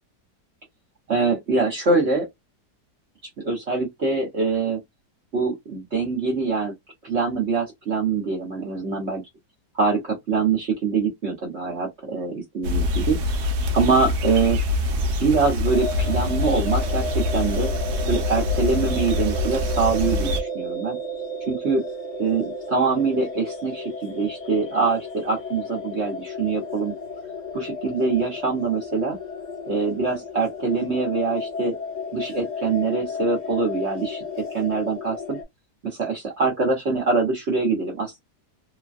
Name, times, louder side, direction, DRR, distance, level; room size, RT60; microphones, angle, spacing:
voice 1, 1.1-2.3 3.4-4.8 5.3-6.7 7.0-9.2 9.8-13.2 13.7-14.6 15.2-17.7 18.1-21.0 21.5-21.8 22.2-26.9 27.5-29.2 29.7-31.7 32.1-34.2 34.5-35.4 35.8-38.2, right 4 dB, 45° right, 1.1 m, -24 dB
sound 1, 12.6-20.4, left 2 dB, 75° right, 1.2 m, -25 dB
sound 2, 15.7-35.4, left 2 dB, 35° left, 0.8 m, -33 dB
3.0 x 2.2 x 2.5 m
omnidirectional pair, 1.8 m